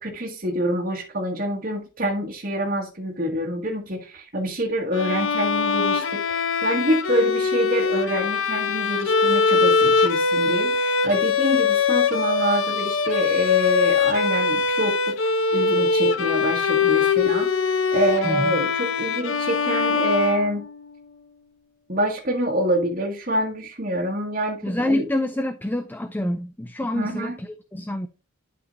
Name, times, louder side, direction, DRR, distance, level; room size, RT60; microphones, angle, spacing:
voice 1, 0.0-20.6 21.9-25.0 26.9-27.4, equal, 40° right, 1.7 m, -26 dB
Bowed string instrument, 4.9-20.9, left 5 dB, 70° left, 0.8 m, -22 dB
voice 2, 18.2-18.6 24.6-28.1, left 1 dB, 10° left, 0.4 m, -27 dB
11.5 x 4.9 x 2.7 m
head